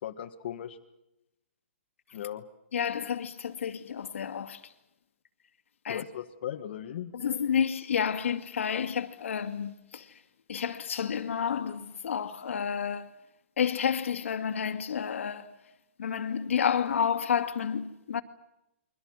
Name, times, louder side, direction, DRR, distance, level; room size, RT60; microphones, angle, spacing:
voice 1, 0.0-0.8 2.1-2.4 5.9-7.1, left 10 dB, 55° left, 1.7 m, -37 dB
voice 2, 2.7-4.7 5.8-6.0 7.1-10.1 10.5-13.1 13.6-15.6 16.0-18.2, left 7 dB, 75° left, 2.2 m, -30 dB
29.5 x 23.5 x 6.4 m
hypercardioid pair, 155°, 7 cm